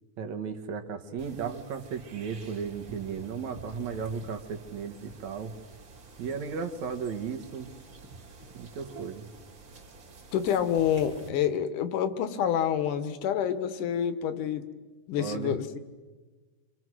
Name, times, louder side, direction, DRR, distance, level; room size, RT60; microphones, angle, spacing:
voice 1, 0.2-5.5 6.2-7.7 8.5-9.2 15.2-15.6, right 6 dB, 65° right, 5 dB, 2.6 m, -35 dB
sound 1, 1.2-11.3, right 3 dB, 40° right, 2.9 m, -49 dB
voice 2, 10.3-14.7 15.1-15.8, left 9 dB, 80° left, 12 dB, 2.7 m, -28 dB
26.0 x 26.0 x 6.3 m, 1.3 s
omnidirectional pair, 3.6 m